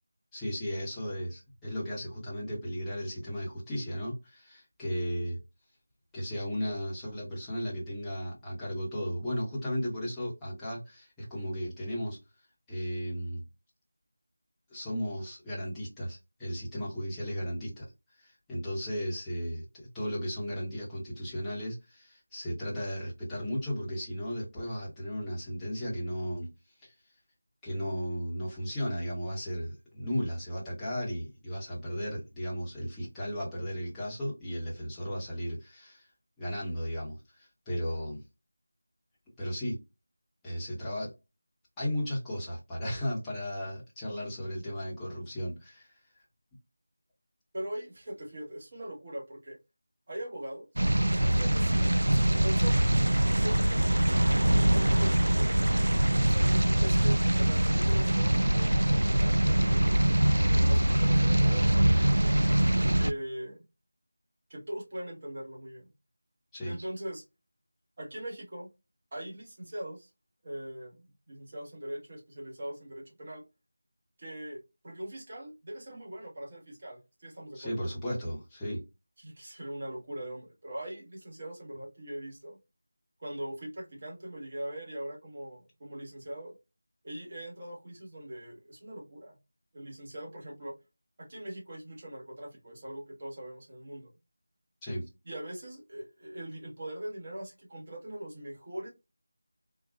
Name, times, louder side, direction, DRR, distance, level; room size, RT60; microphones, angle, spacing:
voice 1, 0.3-5.4 6.1-12.2 12.7-13.5 14.7-17.8 18.2-26.5 26.8-26.9 27.6-36.1 36.4-38.2 39.4-39.8 40.4-41.1 41.8-45.9 66.5-66.8 77.5-78.9 94.8-95.1, equal, 5° left, 1.0 m, -35 dB
voice 2, 47.5-49.6 50.1-50.8 51.1-52.9 53.3-53.8 54.2-55.5 56.3-62.3 63.0-63.6 64.5-65.9 66.7-67.2 68.0-68.7 69.1-70.1 70.4-73.4 74.2-77.8 79.2-82.6 83.2-86.5 87.0-89.4 89.7-90.7 91.2-94.1 95.2-98.9, right 1 dB, 35° right, 1.3 m, -41 dB
sound 1, 50.8-63.1, right 1 dB, 80° right, 0.3 m, -23 dB
3.7 x 2.6 x 2.3 m
figure-of-eight pair, 170°, 0 cm